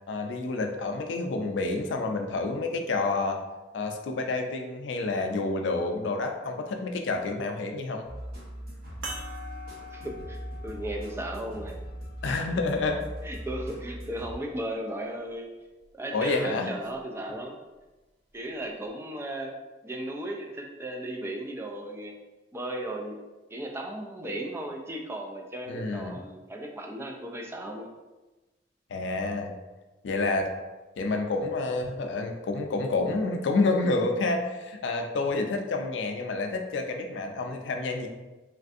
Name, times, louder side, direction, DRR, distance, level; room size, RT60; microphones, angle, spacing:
voice 1, 0.1-3.4 3.7-8.0 12.2-13.1 16.1-16.7 25.7-26.2 28.9-29.5 30.0-30.5 31.0-38.1, left 3 dB, 90° left, 4 dB, 0.4 m, -29 dB
sound 1, 8.0-14.8, equal, 60° right, 1.1 m, -40 dB
sound 2, 9.0-13.8 14.6-14.7 16.9-17.0, equal, 90° right, 0.6 m, -45 dB
voice 2, 9.9-11.8 12.2-12.4 13.2-15.5 15.9-17.6 18.3-22.2 22.5-23.3 23.5-27.9, right 1 dB, 15° right, 1 dB, 0.3 m, -36 dB
3.2 x 2.5 x 2.5 m, 1.1 s
head